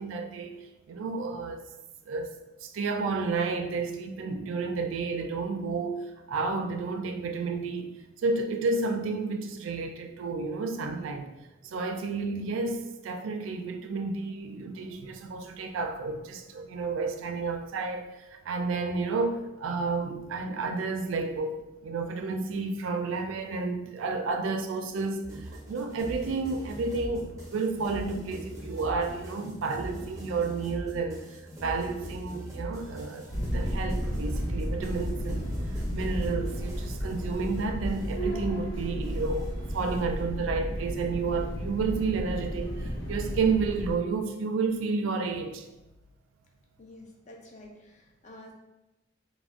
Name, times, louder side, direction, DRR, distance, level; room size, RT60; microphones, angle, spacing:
voice 1, 0.0-1.7 2.1-2.3 2.6-7.9 8.2-11.3 11.6-33.3 33.5-45.6, right 4 dB, 85° right, 6 dB, 0.3 m, -31 dB
sound 1, 25.2-40.2, equal, 15° right, 0.5 m, -42 dB
sound 2, 33.3-44.0, equal, 80° left, 0.7 m, -33 dB
voice 2, 46.8-48.5, left 1 dB, 35° left, 0 dB, 0.4 m, -49 dB
2.5 x 2.1 x 3.4 m, 0.98 s
head